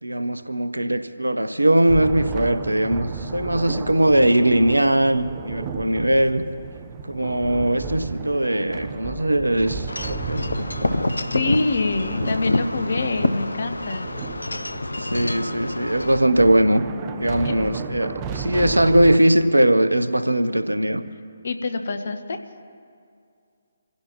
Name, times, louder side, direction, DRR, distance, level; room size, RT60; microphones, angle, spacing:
voice 1, 0.0-6.4 7.1-10.4 15.0-16.8 17.2-21.0, right 1 dB, 90° right, 12 dB, 0.8 m, -20 dB
sound 1, 1.9-19.2, right 5 dB, 25° right, 0.8 m, -34 dB
Wind chime / Wind, 9.9-16.2, left 2 dB, 80° left, 0.7 m, -27 dB
voice 2, 11.3-14.1 17.4-17.5 21.4-22.4, left 3 dB, 60° left, 7 dB, 1.3 m, -25 dB
27.5 x 16.0 x 3.0 m, 2.3 s
figure-of-eight pair, 140°, 0 cm